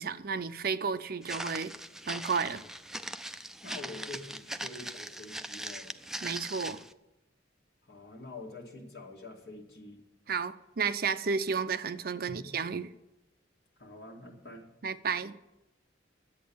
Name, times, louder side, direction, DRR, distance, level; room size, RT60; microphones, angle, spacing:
voice 1, 0.0-1.7 2.1-2.6 6.2-6.8 10.3-12.9 14.8-15.3, right 5 dB, 50° right, 0.5 m, -32 dB
Walk footsteps, 1.2-6.9, right 1 dB, 5° right, 0.3 m, -40 dB
voice 2, 3.6-5.9 7.9-10.0 12.3-12.5 13.8-14.7, left 2 dB, 60° left, 2.2 m, -46 dB
10.5 x 8.2 x 8.7 m
head